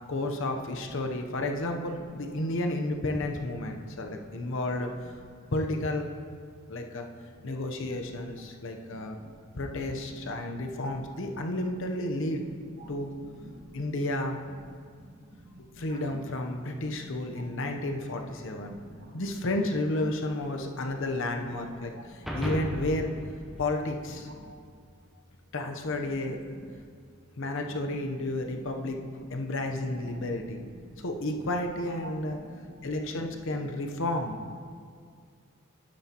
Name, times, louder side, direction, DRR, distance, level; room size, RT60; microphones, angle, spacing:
voice 1, 0.0-5.1 5.5-6.1 6.7-7.0 7.4-9.2 9.6-12.4 12.9-13.2 13.4-14.4 15.6-18.8 19.1-23.2 23.6-24.3 25.5-26.4 27.4-29.0 29.3-30.6 31.0-32.4 32.8-34.4, left 1 dB, 60° left, 4 dB, 0.8 m, -32 dB
voice 2, 7.8-8.2 8.9-9.6 10.1-10.2 10.6-10.8 12.8-12.9 13.2-13.8 15.0-15.2 15.5-16.0 16.8-16.9 17.3-17.5 18.1-18.2 18.6-19.1 21.9-22.0 24.3-24.6 26.7-26.8 29.1-29.2 30.0-30.3 30.9-31.0 32.0-32.8, right 1 dB, 45° right, 2 dB, 1.0 m, -48 dB
sound 1, 22.3-24.7, equal, ahead, 0.8 m, -36 dB
11.0 x 9.4 x 2.9 m, 2.1 s
head